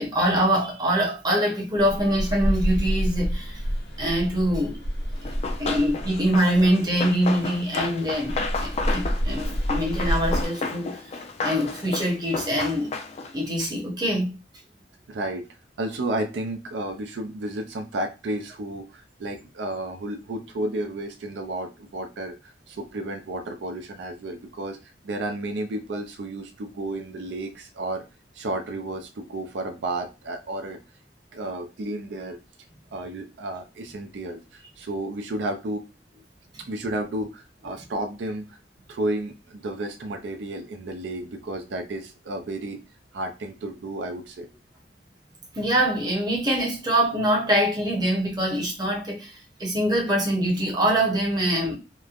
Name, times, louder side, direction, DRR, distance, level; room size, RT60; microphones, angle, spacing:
voice 1, 0.0-3.6 4.0-4.8 5.6-11.1 11.4-12.9 13.3-14.3 45.5-51.8, right 1 dB, 25° right, 0.7 m, -24 dB
sound 1, 1.8-10.5, equal, 60° left, 1.0 m, -29 dB
Run, 5.2-13.4, left 3 dB, 35° left, 0.3 m, -32 dB
voice 2, 15.1-15.5 15.8-28.0 28.3-30.8 31.3-32.4 32.9-35.8 36.6-38.6 38.9-42.8 43.1-44.5, right 1 dB, 80° right, 0.4 m, -32 dB
3.0 x 2.1 x 2.3 m
head